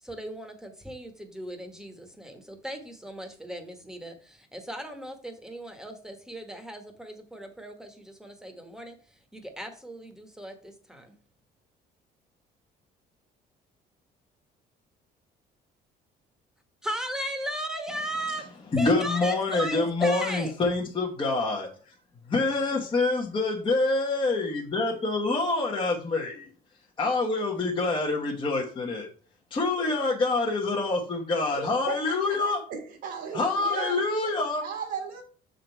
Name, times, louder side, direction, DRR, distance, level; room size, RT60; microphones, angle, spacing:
voice 1, 0.0-9.0 9.3-11.1 16.8-18.5 18.7-20.5, right 1 dB, 5° right, 5 dB, 1.2 m, -37 dB
voice 2, 18.7-21.7 22.3-26.5 27.0-29.1 29.5-32.6 33.3-34.6, left 3 dB, 30° left, -3 dB, 1.2 m, -26 dB
voice 3, 31.5-34.0 34.6-35.2, right 6 dB, 70° right, 0 dB, 1.6 m, -36 dB
6.6 x 3.9 x 4.5 m, 0.43 s
cardioid pair, 110°, 17 cm